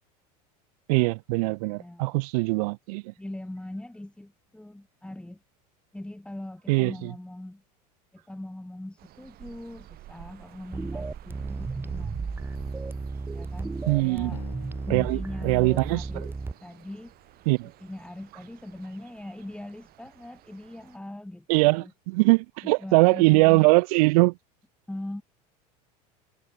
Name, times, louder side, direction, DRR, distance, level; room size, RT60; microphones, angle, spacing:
voice 1, 0.9-3.1 6.7-7.1 13.9-14.4 14.9-16.1 17.5-17.7 21.5-24.3, right 26 dB, 70° right, 1.1 m, -22 dB
voice 2, 1.8-2.2 3.2-5.4 5.9-7.6 8.1-12.4 13.3-14.4 14.9-16.3 16.6-17.1 17.8-21.9 22.6-23.7 24.9-25.2, left 1 dB, 5° left, 7.5 m, -41 dB
sound 1, 9.0-21.0, right 15 dB, 50° right, 3.6 m, -49 dB
sound 2, 10.7-16.5, right 3 dB, 10° right, 0.6 m, -34 dB
sound 3, 14.3-17.5, left 20 dB, 75° left, 4.7 m, -51 dB
hypercardioid pair, 95°, 20 cm